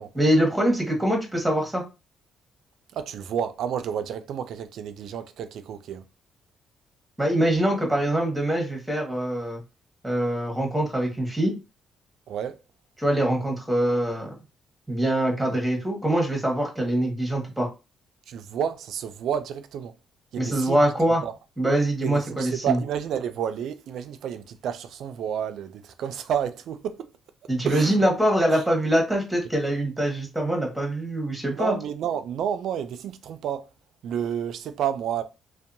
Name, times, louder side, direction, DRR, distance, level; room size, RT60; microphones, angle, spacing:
voice 1, 0.1-1.8 7.2-9.6 10.0-11.6 13.0-14.3 14.9-17.7 20.4-21.2 21.6-22.8 27.5-31.8, right 1 dB, 5° right, 1.1 m, -24 dB
voice 2, 2.9-6.0 12.3-12.6 18.3-19.9 20.3-20.8 21.2-21.3 22.0-27.1 27.6-28.1 28.5-28.6 31.5-33.7 34.0-35.2, right 9 dB, 75° right, 0.3 m, -30 dB
2.6 x 2.1 x 2.6 m
cardioid pair, 90°, 0 cm